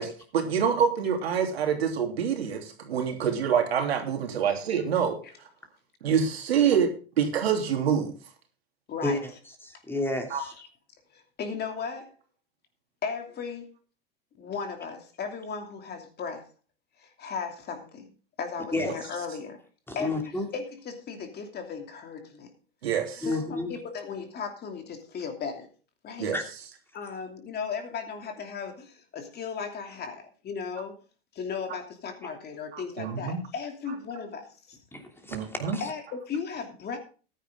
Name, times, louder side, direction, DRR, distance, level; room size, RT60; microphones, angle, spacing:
voice 1, 0.0-5.2 6.0-6.9 7.2-8.1 10.3-10.4 18.8-18.9 22.8-23.2 26.2-26.4 32.7-33.4 35.3-35.8, right 7 dB, 90° right, 4 dB, 3.1 m, -26 dB
voice 2, 8.9-9.2 10.4-10.7 11.1-12.1 13.0-13.7 14.4-16.5 17.0-18.1 18.4-19.6 19.9-22.5 23.2-25.7 26.0-26.3 26.9-30.9 31.3-34.8 35.8-37.0, left 5 dB, 30° left, 5 dB, 2.9 m, -36 dB
voice 3, 9.6-10.5 18.7-18.9 19.9-20.4 23.2-23.7 26.3-26.4 34.9-35.8, left 2 dB, 5° left, 4 dB, 3.0 m, -31 dB
14.5 x 10.0 x 3.7 m, 0.37 s
hypercardioid pair, 110°, 30 cm